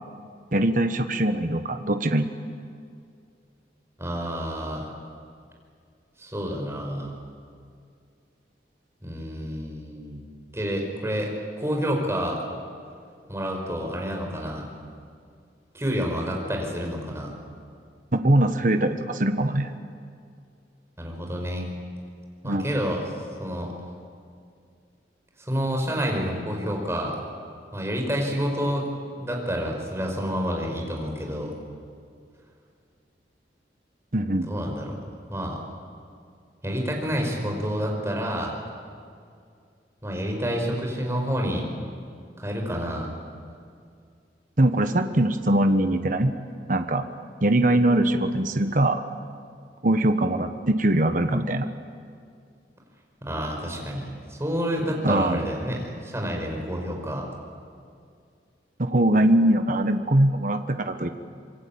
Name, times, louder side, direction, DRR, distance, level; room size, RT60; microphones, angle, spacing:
voice 1, 0.5-2.3 18.1-19.7 22.4-22.7 34.1-34.5 44.6-46.3 46.7-47.0 47.4-49.0 49.8-51.7 55.0-55.4 58.8-61.1, right 1 dB, 50° right, 7 dB, 1.2 m, -22 dB
voice 2, 4.0-4.9 6.2-7.1 9.0-10.2 10.5-12.4 13.3-14.7 15.7-17.3 21.0-21.7 22.4-23.0 23.4-23.7 25.4-27.2 27.7-31.5 34.5-35.0 35.3-35.6 36.6-38.6 40.0-41.7 42.4-43.1 53.2-57.3, equal, 15° right, 0 dB, 5.3 m, -29 dB
26.5 x 22.5 x 8.7 m, 2.3 s
head